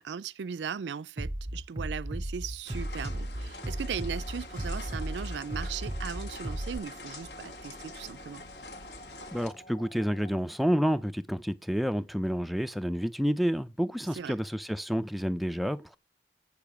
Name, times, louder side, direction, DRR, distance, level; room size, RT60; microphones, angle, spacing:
voice 1, 0.0-8.4 14.2-14.3, right 7 dB, 90° right, 0.4 m, -38 dB
Bass drum, 1.2-6.8, right 1 dB, 20° right, 0.8 m, -35 dB
sound 1, 2.7-9.5, left 2 dB, 70° left, 1.8 m, -45 dB
sound 2, 3.5-10.4, left 1 dB, 30° left, 0.7 m, -52 dB
voice 2, 9.3-16.0, equal, ahead, 0.4 m, -29 dB
8.2 x 6.8 x 5.8 m
head